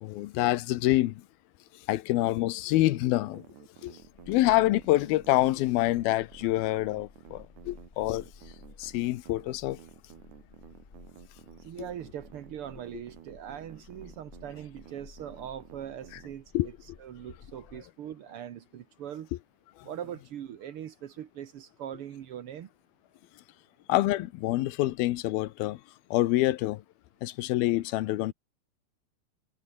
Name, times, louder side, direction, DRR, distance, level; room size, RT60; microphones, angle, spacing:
voice 1, 0.0-1.1 1.9-3.4 3.8-3.9 4.3-8.3 8.8-9.8 11.8-11.9 16.5-16.7 23.9-25.8 26.1-26.8 27.2-28.3, left 16 dB, 80° left, 2.7 m, -26 dB
sound 1, 2.9-16.3, right 11 dB, 60° right, 2.7 m, -52 dB
sound 2, 4.0-17.8, left 4 dB, 25° left, 1.6 m, -54 dB
voice 2, 11.6-16.7 17.0-19.3 19.8-22.7, right 10 dB, 85° right, 1.2 m, -41 dB
omnidirectional pair, 4.4 m